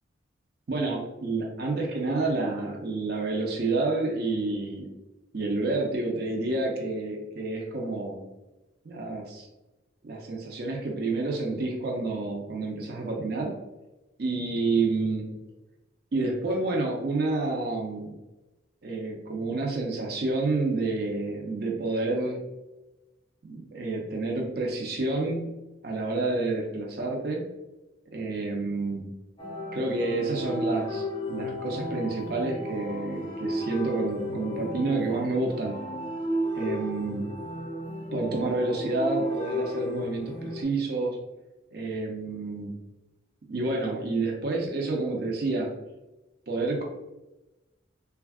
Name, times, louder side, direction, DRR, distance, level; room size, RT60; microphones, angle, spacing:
voice 1, 0.7-4.9 5.3-8.2 8.8-9.5 10.0-13.5 14.2-15.3 16.1-18.1 18.8-22.4 23.4-25.5 25.8-27.4 28.1-29.1 29.7-35.8 36.5-37.3 38.1-41.2 41.7-42.7 43.5-45.7 46.5-46.8, right 3 dB, 55° right, -1 dB, 0.5 m, -29 dB
sound 1, 29.4-40.6, equal, 30° left, 0.5 m, -33 dB
3.3 x 2.3 x 2.3 m, 1.0 s
head